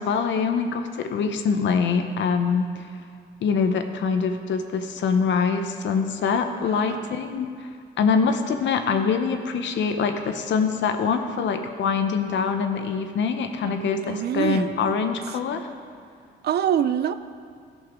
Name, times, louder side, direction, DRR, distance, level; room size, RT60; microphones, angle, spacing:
voice 1, 0.0-2.9 3.4-7.7 8.0-15.7, left 5 dB, 70° left, 7 dB, 0.9 m, -24 dB
voice 2, 6.7-7.0 13.6-14.9 16.4-17.1, right 9 dB, 55° right, 13 dB, 0.5 m, -26 dB
13.5 x 5.6 x 5.1 m, 2.3 s
cardioid pair, 90°, 20 cm